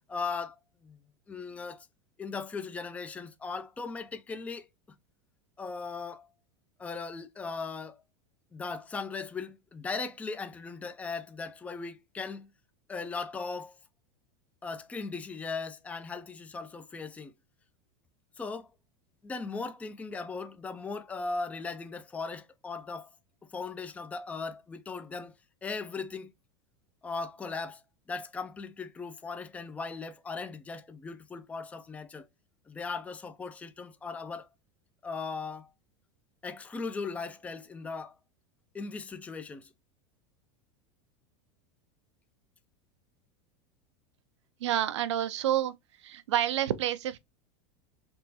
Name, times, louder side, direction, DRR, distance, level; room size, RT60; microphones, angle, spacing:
voice 1, 0.1-0.5 0.8-1.0 1.3-1.9 2.2-4.7 5.6-6.3 6.8-8.0 8.5-12.5 12.9-13.7 14.6-17.3 18.4-18.7 19.2-23.1 23.5-25.3 25.6-26.3 27.0-27.8 28.1-32.3 32.7-34.5 35.0-35.7 36.4-38.1 38.7-39.7, left 4 dB, 10° left, 0.4 m, -38 dB
voice 2, 44.6-45.7 46.0-47.2, right 11 dB, 90° right, 0.5 m, -28 dB
3.5 x 2.9 x 2.7 m
supercardioid pair, 120°, 14 cm